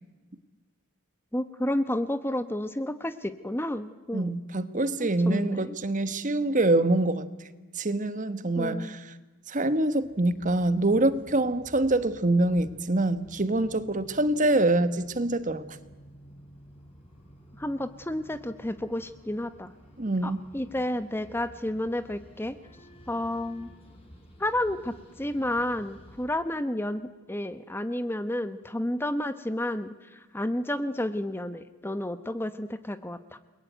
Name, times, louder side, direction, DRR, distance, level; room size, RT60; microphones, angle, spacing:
voice 1, 1.3-4.3 5.0-5.8 8.6-9.0 17.6-19.7 20.2-22.6 23.1-23.7 24.4-33.4, left 1 dB, 10° left, 12 dB, 0.9 m, -31 dB
voice 2, 4.1-7.2 7.7-9.1 9.5-15.8 20.0-20.4, right 2 dB, 35° right, 13 dB, 1.3 m, -25 dB
sound 1, 10.0-26.2, equal, 25° left, 6.1 m, -52 dB
29.0 x 21.5 x 9.3 m, 1.3 s
head